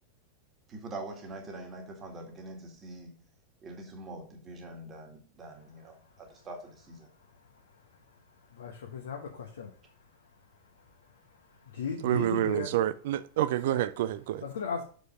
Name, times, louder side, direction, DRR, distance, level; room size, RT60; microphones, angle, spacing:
voice 1, 0.7-3.1 3.6-7.1, right 2 dB, 25° right, 1.9 m, -44 dB
voice 2, 5.5-6.5 7.0-12.8 13.7-13.9 14.4-14.8, left 5 dB, 65° left, 1.1 m, -40 dB
voice 3, 12.0-14.4, right 12 dB, 55° right, 0.4 m, -28 dB
6.4 x 5.1 x 5.1 m
figure-of-eight pair, 90°, 0 cm